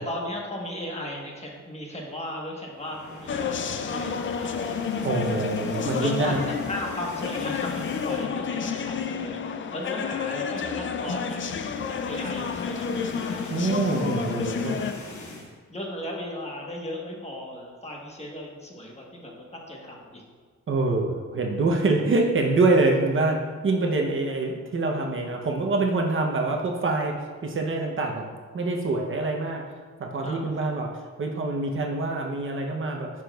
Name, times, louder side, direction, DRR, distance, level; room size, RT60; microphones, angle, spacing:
voice 1, 0.0-5.3 6.0-6.4 6.7-9.4 9.7-11.4 11.9-13.7 14.6-14.7 15.7-20.2 30.2-30.7, left 1 dB, 20° left, -1 dB, 1.2 m, -36 dB
sound 1, 2.7-8.5 8.9-9.1 9.3-9.4 10.5-15.5, left 2 dB, 75° left, 1.8 m, -42 dB
sound 2, 3.3-14.9, left 6 dB, 45° left, 0.4 m, -30 dB
voice 2, 5.0-6.4 13.5-14.8 20.7-27.1 27.4-28.2 28.5-29.6 30.0-30.9 31.2-33.1, right 3 dB, 45° right, 1 dB, 0.7 m, -25 dB
11.0 x 5.9 x 2.3 m, 1.6 s
wide cardioid pair, 150°, 29 cm